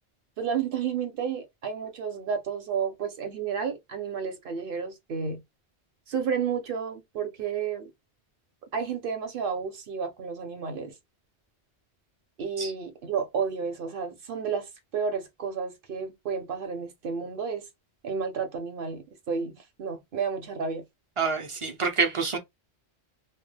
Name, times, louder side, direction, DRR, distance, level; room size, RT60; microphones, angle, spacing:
voice 1, 0.4-5.4 6.1-7.9 8.7-10.9 12.4-17.7 18.0-20.8, right 6 dB, 60° right, 0.8 m, -31 dB
voice 2, 21.2-22.4, right 5 dB, 45° right, 0.4 m, -27 dB
2.2 x 2.1 x 3.2 m
omnidirectional pair, 1.1 m